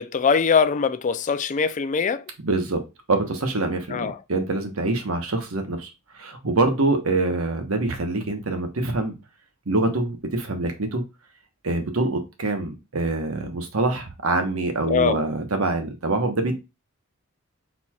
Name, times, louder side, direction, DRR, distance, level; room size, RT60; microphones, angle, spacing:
voice 1, 0.0-2.2 3.9-4.2 14.8-15.2, left 5 dB, 35° left, 0.4 m, -22 dB
voice 2, 2.4-9.1 9.7-11.0 11.6-16.5, right 2 dB, 85° right, 1.1 m, -25 dB
4.4 x 4.1 x 2.3 m
head